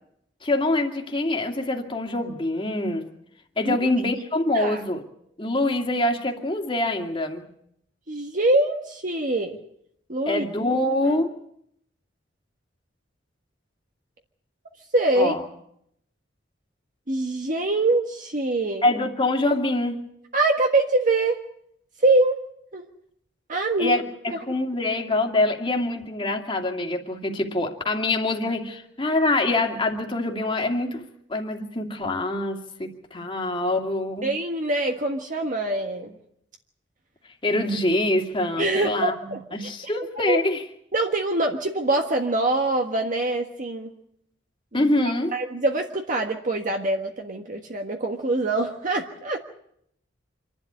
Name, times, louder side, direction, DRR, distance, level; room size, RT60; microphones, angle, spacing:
voice 1, 0.4-3.1 3.6-5.0 5.4-7.5 10.3-11.3 15.2-15.4 18.8-20.0 23.8-31.0 31.3-34.3 37.4-40.6 44.7-45.3, left 2 dB, 30° left, 2 dB, 2.5 m, -25 dB
voice 2, 8.1-9.6 10.1-10.4 11.0-11.2 14.9-15.3 17.1-18.9 20.3-21.4 22.0-22.4 22.7-22.9 23.5-24.0 24.3-24.4 34.2-36.2 38.6-39.7 40.3-40.4 40.9-43.9 44.7-49.4, right 2 dB, 45° right, 2 dB, 1.5 m, -24 dB
27.0 x 12.0 x 9.7 m, 0.73 s
head